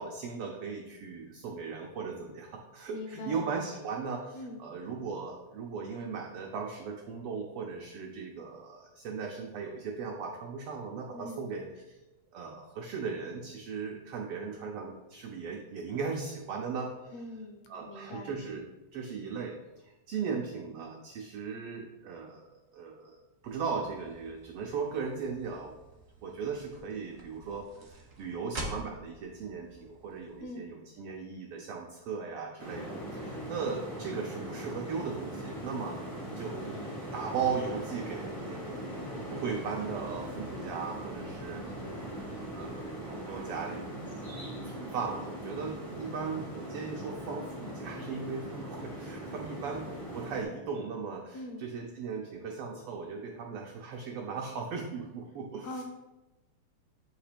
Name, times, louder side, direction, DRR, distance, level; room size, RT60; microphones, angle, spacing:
voice 1, 0.0-12.0 12.3-17.2 17.7-18.7 18.9-23.2 23.4-25.8 26.2-36.0 36.4-36.7 37.1-41.7 41.9-42.1 42.5-49.9 50.1-55.8, right 5 dB, 90° right, 1 dB, 1.2 m, -38 dB
voice 2, 2.9-3.5 4.3-4.6 11.1-11.4 17.1-18.4 30.4-30.7 51.3-51.6 55.6-55.8, left 2 dB, 75° left, 5 dB, 1.7 m, -42 dB
sound 1, 23.4-30.5, right 2 dB, 60° right, 0.7 m, -47 dB
sound 2, 32.6-50.4, right 1 dB, 50° left, 0.3 m, -40 dB
8.6 x 2.9 x 5.0 m, 1.0 s
omnidirectional pair, 3.3 m